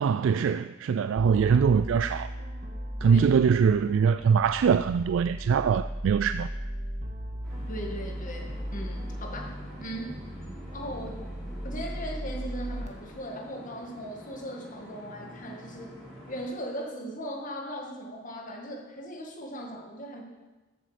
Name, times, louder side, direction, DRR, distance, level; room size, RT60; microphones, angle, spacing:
voice 1, 0.0-2.3 3.0-6.5, right 6 dB, 70° right, 0.3 m, -23 dB
sound 1, 1.2-12.9, equal, 40° right, 1.5 m, -37 dB
sound 2, 7.4-16.5, equal, 5° left, 4.3 m, -47 dB
voice 2, 7.7-10.1 10.7-11.3 11.6-15.9 16.3-20.2, equal, 45° left, 1.9 m, -38 dB
14.0 x 8.2 x 5.0 m
head